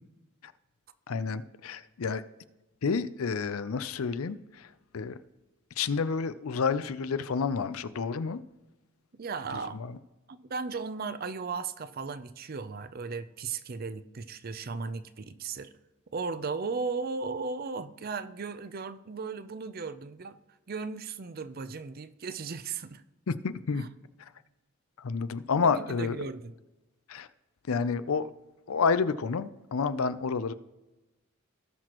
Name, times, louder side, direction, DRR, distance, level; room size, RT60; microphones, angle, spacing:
voice 1, 1.1-2.2 2.8-5.2 5.8-8.4 9.5-10.0 23.3-23.8 24.2-24.3 25.0-26.3 27.1-27.3 27.7-28.3 28.7-30.5, left 5 dB, 85° left, 14 dB, 0.5 m, -30 dB
voice 2, 9.2-9.8 10.3-15.7 16.1-20.4 20.7-23.0 23.8-23.9 25.6-26.5, right 4 dB, 45° right, 13 dB, 0.5 m, -36 dB
18.0 x 6.0 x 3.0 m, 1.1 s
head